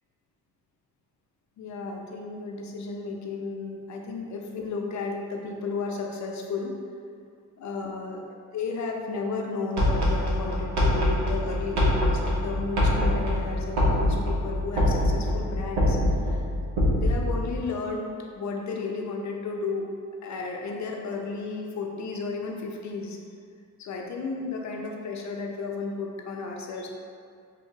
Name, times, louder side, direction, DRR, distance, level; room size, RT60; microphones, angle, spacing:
voice 1, 1.6-6.7 7.6-16.0 16.2-16.3 17.0-19.9 20.2-23.2 23.8-26.9, left 4 dB, 45° left, 1 dB, 0.5 m, -33 dB
sound 1, 9.8-17.6, left 1 dB, 70° right, 0.8 m, -24 dB
2.8 x 2.5 x 2.5 m, 2.2 s
hypercardioid pair, 50°, 39 cm